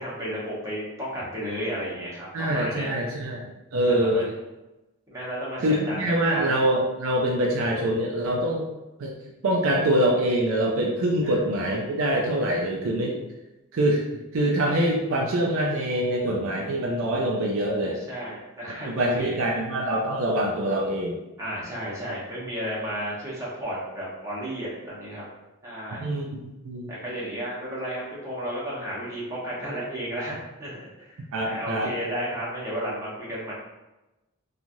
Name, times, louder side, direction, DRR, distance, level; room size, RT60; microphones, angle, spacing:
voice 1, 0.0-2.9 3.9-4.3 5.1-6.0 6.3-6.5 11.2-11.3 17.9-19.4 21.4-25.2 25.6-26.1 26.9-30.3 30.6-33.5, equal, 15° right, -8 dB, 1.0 m, -33 dB
voice 2, 2.3-4.2 5.6-8.7 9.0-9.2 9.4-13.2 13.7-14.1 14.3-18.0 18.9-21.2 26.0-26.9 31.3-31.9, right 1 dB, 65° right, -1 dB, 0.4 m, -24 dB
3.0 x 2.3 x 2.6 m, 1.0 s
head